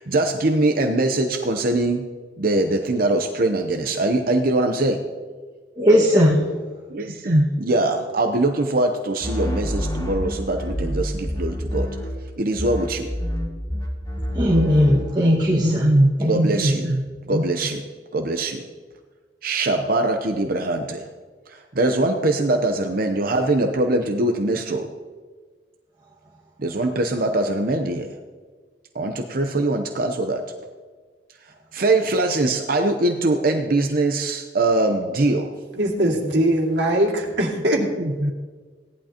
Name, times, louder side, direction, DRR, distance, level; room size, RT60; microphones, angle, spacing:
voice 1, 0.0-2.0 2.4-5.0 6.9-11.9 12.4-13.1 15.5-17.8 18.1-18.6 19.4-21.1 21.5-24.9 26.6-28.1 28.9-30.4 31.7-35.5 37.8-38.3, right 2 dB, 55° right, 5 dB, 0.8 m, -22 dB
voice 2, 5.8-6.4 14.3-15.9 16.2-16.3, equal, 25° right, -5 dB, 1.7 m, -17 dB
sound 1, 9.2-12.3 12.6-15.1, equal, 20° left, 2.7 m, -27 dB
voice 3, 35.8-37.8, right 1 dB, 85° right, -1 dB, 2.3 m, -21 dB
17.0 x 11.0 x 2.9 m, 1.4 s
head